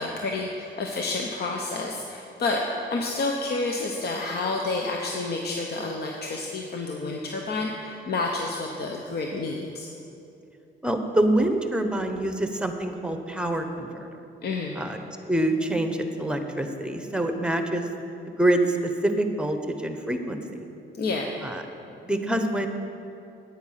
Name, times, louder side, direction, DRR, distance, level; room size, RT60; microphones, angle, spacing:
voice 1, 0.0-9.9 14.4-14.8 20.9-21.3, left 3 dB, 55° left, 1 dB, 1.0 m, -29 dB
voice 2, 10.8-14.1 14.8-15.0 15.3-17.9 18.4-20.4 21.4-21.6 22.0-22.7, right 1 dB, 5° right, 6 dB, 1.0 m, -25 dB
9.5 x 8.9 x 5.7 m, 2.7 s
cardioid pair, 90°, 20 cm